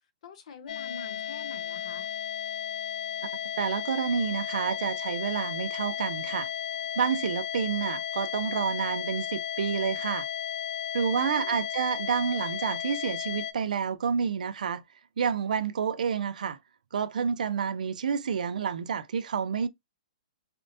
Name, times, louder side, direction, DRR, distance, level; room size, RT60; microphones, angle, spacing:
voice 1, 0.2-2.1 11.1-11.6, left 4 dB, 55° left, 0.9 m, -44 dB
sound 1, 0.7-13.5, left 10 dB, 80° left, 0.5 m, -34 dB
voice 2, 3.6-6.5 7.0-10.3 10.9-14.8 15.2-16.6 16.9-19.7, right 7 dB, 80° right, 0.5 m, -29 dB
4.3 x 2.1 x 2.6 m
hypercardioid pair, 160°, 4 cm